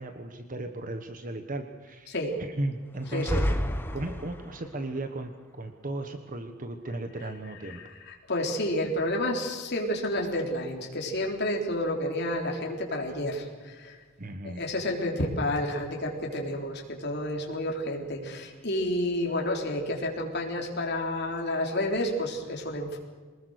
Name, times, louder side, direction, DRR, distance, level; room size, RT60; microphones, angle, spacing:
voice 1, 0.0-2.1 2.4-3.6 3.9-5.3 5.6-7.8 14.2-14.6, right 2 dB, 40° right, 7 dB, 1.3 m, -35 dB
sound 1, 3.0-4.7, equal, 10° left, 1.3 m, -30 dB
voice 2, 3.1-3.4 7.6-14.0 14.4-23.0, left 1 dB, 55° left, 0 dB, 3.8 m, -30 dB
24.5 x 20.0 x 6.6 m, 1.4 s
head